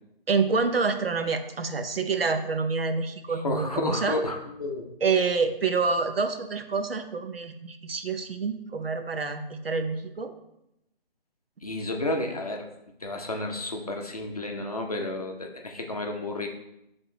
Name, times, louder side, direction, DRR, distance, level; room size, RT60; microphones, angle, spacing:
voice 1, 0.3-4.2 5.0-10.3, right 4 dB, 70° right, 7 dB, 0.8 m, -27 dB
voice 2, 3.3-4.9 11.6-12.7 13.0-16.5, left 2 dB, 40° left, 2 dB, 0.6 m, -31 dB
6.8 x 3.6 x 3.9 m, 0.85 s
figure-of-eight pair, 170°, 30 cm